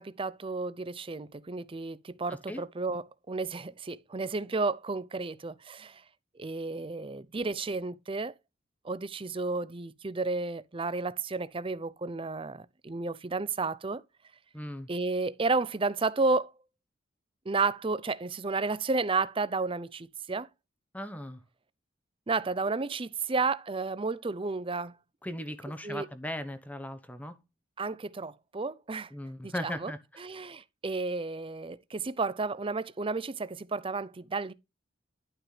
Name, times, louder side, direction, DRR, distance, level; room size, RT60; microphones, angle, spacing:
voice 1, 0.0-6.0 6.4-8.3 8.8-14.0 14.9-16.5 17.5-20.5 22.3-25.0 25.8-26.1 27.8-29.1 29.4-29.9 30.2-34.5, right 3 dB, 25° right, 0.6 m, -32 dB
voice 2, 2.3-2.6 14.5-14.9 20.9-21.4 25.2-27.4 29.1-30.0, left 1 dB, 10° left, 1.0 m, -38 dB
11.5 x 5.9 x 3.3 m
head